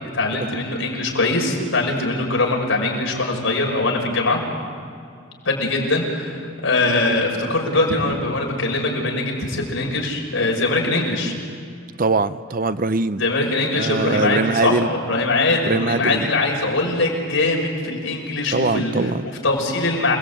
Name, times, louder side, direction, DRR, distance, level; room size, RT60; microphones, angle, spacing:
voice 1, 0.1-4.4 5.4-11.3 13.1-19.1 19.4-20.2, left 2 dB, 75° left, 0 dB, 5.9 m, -22 dB
voice 2, 12.0-13.2 13.7-14.9 15.7-16.3 18.5-19.3, right 3 dB, 40° right, 13 dB, 0.6 m, -22 dB
28.5 x 19.5 x 8.6 m, 2.3 s
head